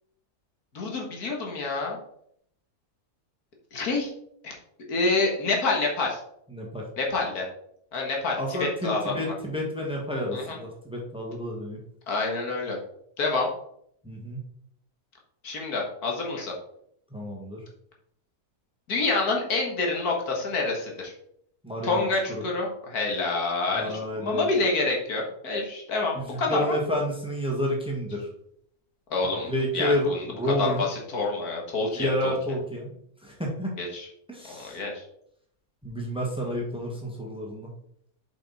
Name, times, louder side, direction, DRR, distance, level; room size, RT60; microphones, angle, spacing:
voice 1, 0.7-2.0 3.7-4.1 4.4-4.5 4.9-6.2 7.0-7.5 7.9-9.3 10.3-10.6 12.1-12.8 13.2-13.5 15.4-16.5 18.9-21.1 21.8-26.7 29.1-30.3 30.6-32.3 33.8-34.1 34.5-35.0, left 3 dB, 75° left, 0 dB, 2.1 m, -27 dB
voice 2, 6.5-6.9 8.4-11.8 14.0-14.4 17.1-17.6 21.6-22.1 23.7-24.5 26.1-28.3 29.5-30.8 31.9-32.9 33.2-33.7 34.3-34.8 35.8-37.7, equal, 5° right, -1 dB, 1.6 m, -30 dB
7.5 x 5.4 x 4.2 m, 0.71 s
omnidirectional pair, 1.6 m